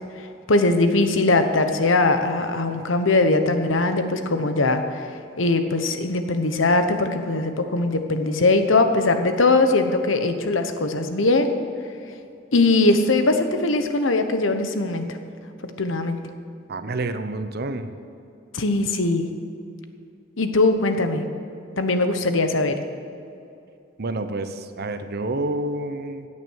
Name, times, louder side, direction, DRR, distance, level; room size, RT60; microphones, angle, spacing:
voice 1, 0.5-5.1 5.4-11.5 12.5-15.2 15.8-16.2 18.5-19.3 20.4-21.3 21.8-22.8, left 2 dB, 80° left, 7 dB, 1.1 m, -20 dB
voice 2, 16.7-17.9 24.0-26.3, right 2 dB, 55° right, 9 dB, 0.9 m, -28 dB
16.0 x 8.8 x 6.4 m, 2.6 s
head